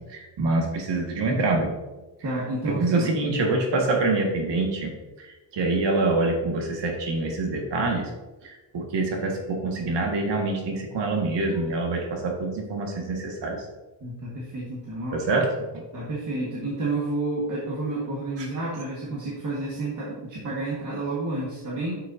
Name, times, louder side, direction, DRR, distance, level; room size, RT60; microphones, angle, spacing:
voice 1, 0.0-1.7 2.7-4.9 5.2-5.3 5.5-8.1 8.4-13.6 15.1-15.5, right 2 dB, 65° right, 1 dB, 1.9 m, -25 dB
voice 2, 2.2-3.1 14.0-15.2 15.9-22.0, right 2 dB, 40° right, -5 dB, 1.7 m, -30 dB
10.0 x 6.5 x 2.8 m, 1.2 s
cardioid pair, 160°, 46 cm